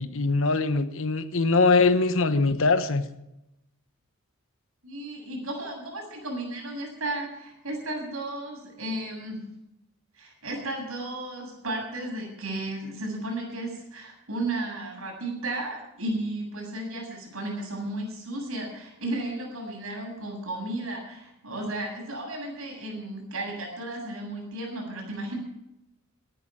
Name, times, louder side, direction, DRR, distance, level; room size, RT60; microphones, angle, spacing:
voice 1, 0.0-3.0, left 3 dB, 60° left, 11 dB, 1.1 m, -22 dB
voice 2, 4.8-9.4 10.1-25.4, right 1 dB, 70° right, 0 dB, 7.7 m, -34 dB
18.0 x 11.0 x 6.1 m, 0.88 s
head